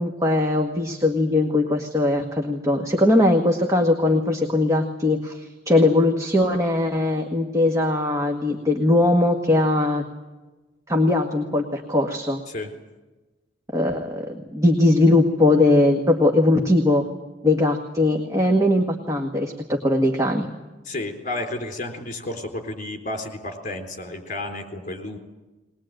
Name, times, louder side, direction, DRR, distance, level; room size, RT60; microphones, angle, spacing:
voice 1, 0.0-10.0 10.9-12.4 13.7-17.1 17.4-20.5, left 2 dB, 15° right, 2 dB, 1.8 m, -20 dB
voice 2, 20.9-25.2, left 2 dB, 45° left, 4 dB, 4.0 m, -32 dB
21.5 x 21.0 x 9.1 m, 1.1 s
head